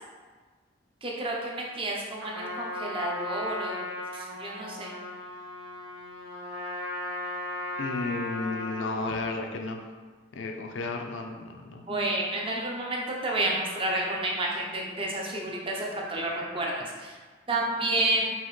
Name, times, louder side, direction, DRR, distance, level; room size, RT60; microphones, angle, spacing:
voice 1, 1.0-3.8 4.1-5.0 11.9-17.1 17.5-18.3, right 1 dB, 25° right, -2 dB, 0.6 m, -30 dB
Trumpet, 2.2-9.0, left 1 dB, 80° right, 0.6 m, -36 dB
voice 2, 7.8-9.8 10.3-11.8, left 3 dB, 75° left, 3 dB, 0.4 m, -33 dB
5.6 x 2.7 x 3.1 m, 1.4 s
head